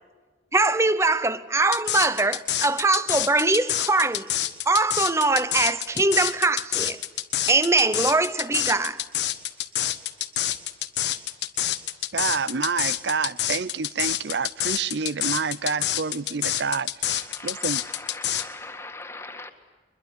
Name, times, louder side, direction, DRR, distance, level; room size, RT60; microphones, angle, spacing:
voice 1, 0.5-4.3 4.7-7.0 7.5-9.0, right 3 dB, 15° right, 0.8 m, -22 dB
sound 1, 1.7-18.4, left 12 dB, 85° left, 1.3 m, -27 dB
voice 2, 12.1-17.8, right 5 dB, 90° right, 0.7 m, -28 dB
voice 3, 17.1-19.5, left 3 dB, 15° left, 1.8 m, -40 dB
23.5 x 22.0 x 9.7 m
head